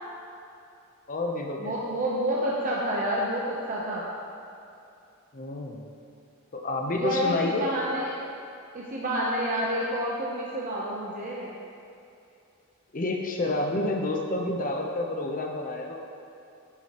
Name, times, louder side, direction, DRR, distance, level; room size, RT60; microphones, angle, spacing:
voice 1, 1.1-1.7 5.3-5.9 6.5-7.7 12.9-16.0, left 2 dB, 40° left, 1 dB, 0.9 m, -29 dB
voice 2, 1.6-4.1 7.0-8.2 8.7-11.6, equal, 40° right, -5 dB, 0.8 m, -29 dB
9.8 x 7.6 x 3.0 m, 2.6 s
head